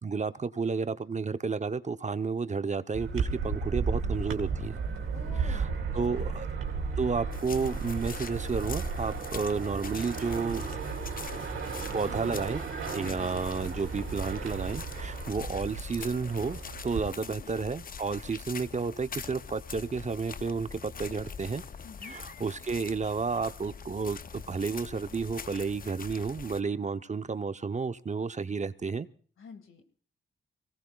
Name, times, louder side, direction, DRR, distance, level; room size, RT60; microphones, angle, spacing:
voice 1, 0.0-4.8 5.4-5.7 5.9-6.5 7.0-10.6 11.9-12.6 12.9-21.6 22.0-29.1, right 4 dB, 35° right, 12 dB, 0.7 m, -31 dB
sound 1, 2.9-17.0, right 5 dB, 80° right, 2.5 m, -34 dB
voice 2, 5.1-5.7 6.0-6.4 12.1-12.4 13.0-13.4 17.3-17.5 21.8-22.2 29.4-29.9, left 5 dB, 75° left, 7 dB, 2.1 m, -48 dB
sound 2, 7.3-26.6, left 6 dB, 45° left, 0.6 m, -43 dB
24.5 x 17.5 x 2.3 m, 0.44 s
cardioid pair, 60°, 21 cm